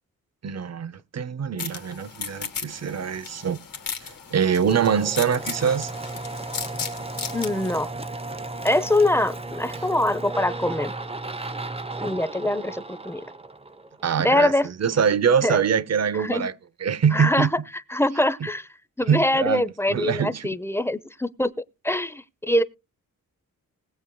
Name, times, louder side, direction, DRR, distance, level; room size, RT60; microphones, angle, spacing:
voice 1, 0.4-3.6 4.0-5.9 14.0-16.5 16.8-17.5 19.1-20.6, right 7 dB, 50° right, 0.8 m, -24 dB
sound 1, 1.6-7.8, left 7 dB, 85° left, 2.8 m, -36 dB
sound 2, 4.6-14.2, right 2 dB, 15° right, 0.9 m, -34 dB
voice 2, 7.3-7.9 8.6-10.9 12.0-13.2 14.2-14.7 15.4-15.6 16.2-16.5 17.1-17.5 17.9-18.7 19.0-21.5 21.8-22.6, left 1 dB, 5° left, 0.7 m, -23 dB
20.0 x 8.2 x 2.3 m
wide cardioid pair, 100°, 34 cm